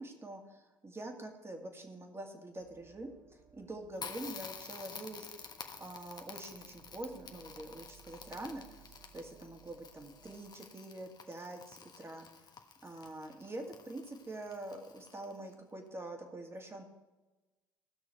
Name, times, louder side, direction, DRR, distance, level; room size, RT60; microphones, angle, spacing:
voice 1, 0.0-5.3 5.8-12.5 12.8-16.8, right 2 dB, 20° right, 4 dB, 2.3 m, -45 dB
sound 1, 2.6-10.4, right 6 dB, 40° right, 2.2 m, -62 dB
Crackle, 4.0-15.5, left 6 dB, 35° left, 1.3 m, -50 dB
18.0 x 6.3 x 4.7 m, 1.2 s
hypercardioid pair, 60°, 12 cm